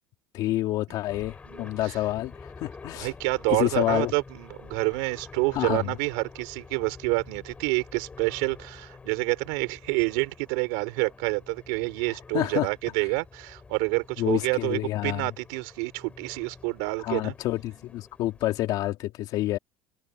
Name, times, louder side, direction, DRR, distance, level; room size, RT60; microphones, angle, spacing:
voice 1, 0.3-3.1 3.5-4.1 5.5-6.0 12.3-12.7 14.2-15.3 17.0-19.6, left 15 dB, 50° left, 2.9 m, -28 dB
sound 1, 1.1-18.6, left 4 dB, 15° left, 5.4 m, -48 dB
voice 2, 1.5-2.0 2.9-17.3, right 30 dB, 75° right, 4.5 m, -28 dB
cardioid pair, 150°, 9 cm